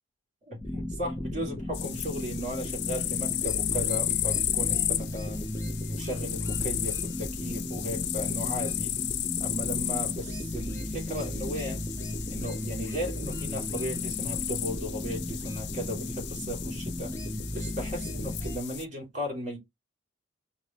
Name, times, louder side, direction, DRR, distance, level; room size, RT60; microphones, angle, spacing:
voice 1, 0.4-5.5 5.9-9.0 9.4-11.8 12.3-17.2 17.5-19.6, equal, 40° right, 2.8 m, -36 dB
sound 1, 0.6-18.6, left 1 dB, 15° left, 0.8 m, -35 dB
sound 2, 1.7-18.8, left 13 dB, 60° left, 0.4 m, -34 dB
4.7 x 2.2 x 4.1 m
head